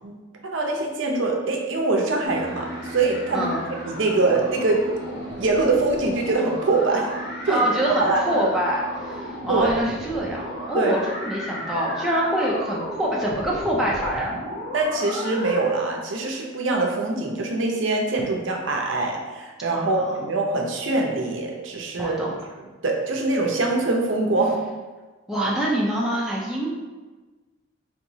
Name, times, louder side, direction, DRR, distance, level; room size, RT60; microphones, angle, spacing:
voice 1, 0.4-3.5 3.9-4.9 5.4-7.1 7.5-7.6 8.0-8.4 9.5-9.7 10.7-11.0 14.7-22.2 22.8-24.6, right 3 dB, 60° right, 0 dB, 0.6 m, -23 dB
sound 1, 2.2-15.7, equal, 50° left, 0.8 m, -34 dB
voice 2, 7.5-14.3 19.7-20.0 22.0-22.3 25.3-26.7, right 1 dB, ahead, -5 dB, 0.5 m, -25 dB
4.4 x 2.9 x 2.7 m, 1.3 s
head